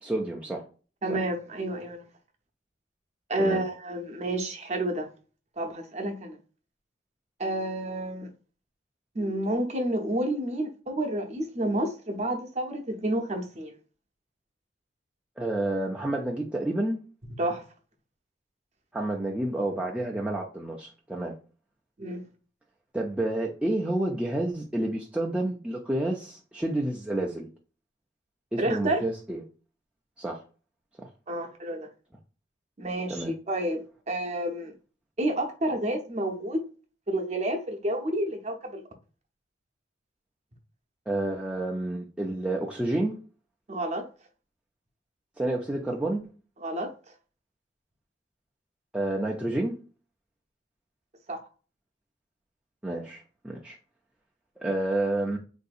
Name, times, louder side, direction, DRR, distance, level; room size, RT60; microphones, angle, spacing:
voice 1, 0.0-0.7 1.1-1.2 3.4-3.6 15.4-17.0 18.9-21.3 22.9-27.5 28.5-29.4 30.2-30.4 31.0-31.1 33.1-33.3 41.1-43.2 45.4-46.2 48.9-49.8 52.8-53.8 54.6-55.4, right 1 dB, 5° right, 0.3 m, -29 dB
voice 2, 1.0-2.0 3.3-5.1 5.6-6.4 7.4-8.3 9.1-13.8 17.4-17.6 22.0-22.2 28.6-29.0 31.3-31.9 32.8-34.7 35.2-36.6 37.1-38.8 43.7-44.0 46.6-46.9 51.3-51.4, right 1 dB, 35° right, 0.7 m, -30 dB
3.8 x 2.6 x 2.4 m
head